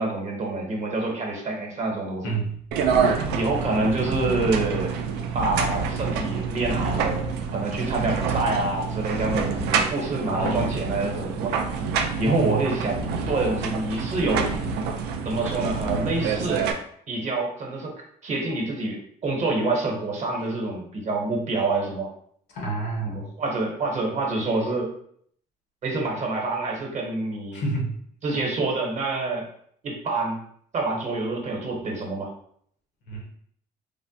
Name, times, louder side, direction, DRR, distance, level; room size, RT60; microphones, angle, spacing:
voice 1, 0.0-2.3 3.3-4.9 5.3-7.2 7.5-11.6 12.2-14.5 15.2-16.6 17.1-17.9 18.2-22.1 23.0-24.9 25.8-27.6 28.2-29.5 29.8-30.4 30.7-32.3, right 2 dB, 45° right, 0 dB, 0.8 m, -27 dB
voice 2, 2.2-2.5 3.2-3.4 10.2-10.7 12.2-12.7 22.5-23.2 27.5-27.9 33.1-33.4, right 2 dB, 75° left, 0 dB, 1.0 m, -28 dB
sound 1, 2.7-16.7, right 5 dB, 85° right, 0.4 m, -27 dB
3.3 x 2.1 x 2.7 m, 0.65 s
cardioid pair, 110°, 17 cm